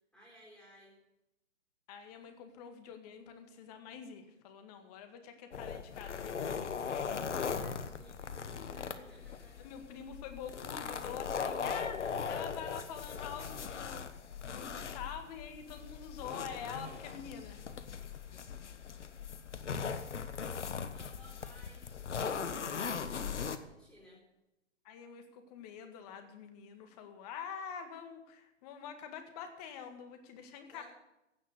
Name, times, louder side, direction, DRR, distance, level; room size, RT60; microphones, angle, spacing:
voice 1, 0.1-1.0 7.2-9.7 20.9-22.0 22.8-24.2 30.7-30.8, equal, ahead, -6 dB, 4.2 m, -58 dB
voice 2, 1.9-6.7 9.6-14.2 14.5-17.6 24.8-30.8, left 7 dB, 30° left, 7 dB, 1.9 m, -46 dB
sound 1, 5.5-23.6, left 6 dB, 70° left, 1.2 m, -39 dB
16.0 x 6.4 x 8.2 m, 0.92 s
figure-of-eight pair, 125°, 37 cm